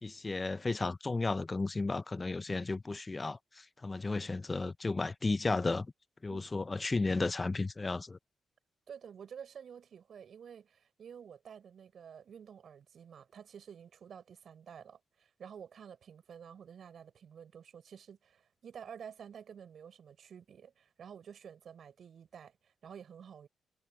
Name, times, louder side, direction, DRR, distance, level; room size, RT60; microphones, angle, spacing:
voice 1, 0.0-5.9 6.2-8.2, left 3 dB, 30° left, 0.7 m, -33 dB
voice 2, 6.3-6.7 8.9-23.5, right 7 dB, 65° right, 6.4 m, -51 dB
supercardioid pair, 65°, 0 cm